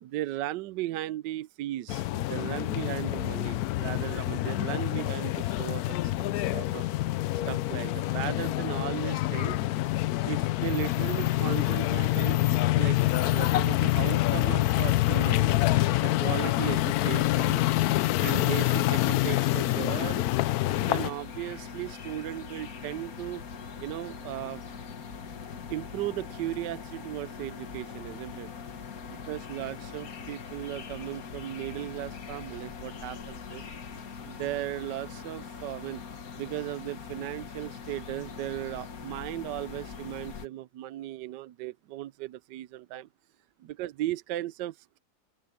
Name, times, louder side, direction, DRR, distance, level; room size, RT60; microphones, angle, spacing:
voice 1, 0.0-6.9 7.4-9.6 10.3-12.4 12.8-13.0 13.3-15.5 16.0-17.6 18.2-20.3 20.7-23.4 23.8-24.6 25.7-28.5 29.1-33.6 34.2-36.0 36.3-43.1 43.6-45.0, right 14 dB, 75° right, 1.2 m, -36 dB
sound 1, 1.9-21.1, left 16 dB, 75° left, 0.9 m, -26 dB
sound 2, 20.7-40.5, left 6 dB, 50° left, 1.7 m, -42 dB
open air
omnidirectional pair, 2.0 m